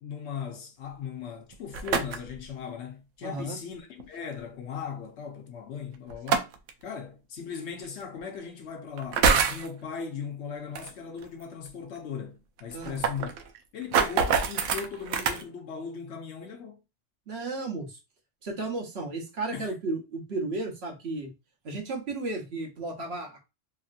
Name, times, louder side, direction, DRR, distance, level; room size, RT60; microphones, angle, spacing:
voice 1, 0.0-6.5 6.8-13.3 13.7-16.8 19.5-19.7, left 6 dB, 65° left, 0.9 m, -38 dB
sound 1, 1.5-2.4 4.0-4.1 6.1-6.7 7.8-7.9 9.0-9.7 10.7-10.9 11.2-11.3 11.7-11.8 12.0-12.1 12.6-15.4, right 6 dB, 80° right, 0.9 m, -25 dB
voice 2, 3.2-3.6 12.7-13.0 17.3-18.0 18.4-21.3 21.6-23.4, right 3 dB, 60° right, 1.1 m, -34 dB
3.0 x 2.7 x 2.4 m
omnidirectional pair, 1.3 m